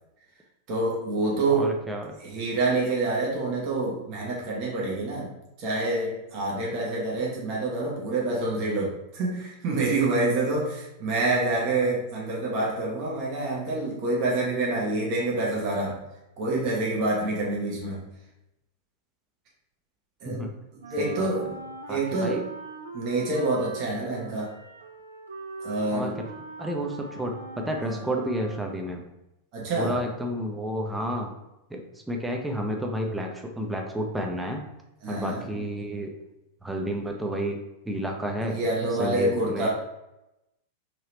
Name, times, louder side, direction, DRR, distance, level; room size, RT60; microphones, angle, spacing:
voice 1, 0.7-1.7 2.2-5.3 5.6-16.0 16.4-18.1 20.2-20.4 20.9-21.5 21.9-22.5 22.9-24.5 25.6-26.1 27.9-28.0 29.5-30.0 35.0-35.5 38.5-39.7, right 2 dB, 40° right, -4 dB, 0.9 m, -27 dB
voice 2, 1.5-2.2 20.2-20.5 21.0-21.3 21.9-22.4 25.9-26.3 26.6-29.0 29.7-31.3 31.7-34.6 35.1-36.1 36.6-38.6 39.0-39.7, equal, 5° right, 1 dB, 0.5 m, -31 dB
Wind instrument woodwind instrument, 20.8-28.9, right 3 dB, 70° right, 0.3 m, -41 dB
2.9 x 2.8 x 3.1 m, 0.91 s
figure-of-eight pair, 90°, 0 cm